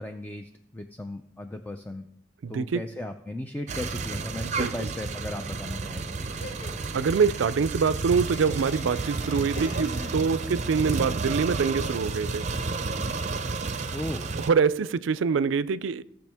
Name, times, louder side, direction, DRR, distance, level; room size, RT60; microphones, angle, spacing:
voice 1, 0.0-2.1 2.5-6.2 13.9-14.3, left 1 dB, 10° left, 0.4 m, -36 dB
voice 2, 2.4-2.8 4.4-4.9 6.9-12.5 14.4-16.0, right 5 dB, 85° right, 0.4 m, -25 dB
sound 1, 3.7-14.5, right 3 dB, 40° right, 0.6 m, -31 dB
Laughter, 6.4-10.6, left 1 dB, 70° left, 1.4 m, -43 dB
16.5 x 6.3 x 3.5 m
head